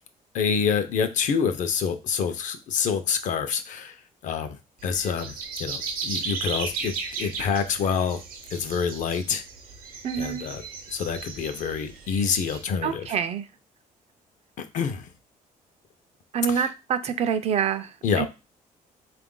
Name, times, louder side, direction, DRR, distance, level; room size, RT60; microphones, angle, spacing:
voice 1, 0.3-4.0 4.2-4.6 4.8-5.3 5.6-8.2 8.5-9.4 10.1-10.6 10.9-13.1 14.6-15.1 16.5-16.7 18.0-18.3, left 6 dB, 60° left, 0.6 m, -27 dB
sound 1, 4.8-12.6, right 5 dB, 85° right, 0.8 m, -36 dB
voice 2, 10.0-10.4 12.8-13.4 16.3-17.9 18.2-18.3, right 7 dB, 45° right, 0.4 m, -26 dB
3.8 x 2.4 x 3.7 m
cardioid pair, 140°, 14 cm